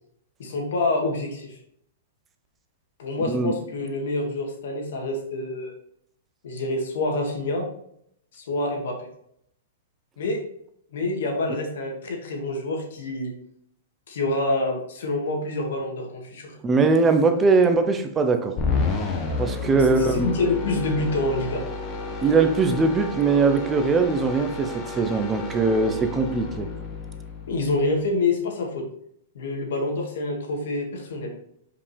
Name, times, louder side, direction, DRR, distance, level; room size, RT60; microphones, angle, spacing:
voice 1, 0.4-1.5 3.0-5.7 6.4-7.7 8.3-9.0 10.2-10.4 10.9-13.3 14.1-16.5 19.8-21.6 27.5-28.8 29.3-31.3, left 2 dB, 70° left, 2.0 m, -27 dB
voice 2, 16.6-18.6 19.4-20.3 22.2-26.7, right 4 dB, 15° right, 0.7 m, -21 dB
sound 1, 18.6-27.9, left 3 dB, 25° left, 1.3 m, -31 dB
5.3 x 5.2 x 3.4 m
hypercardioid pair, 140°, 0 cm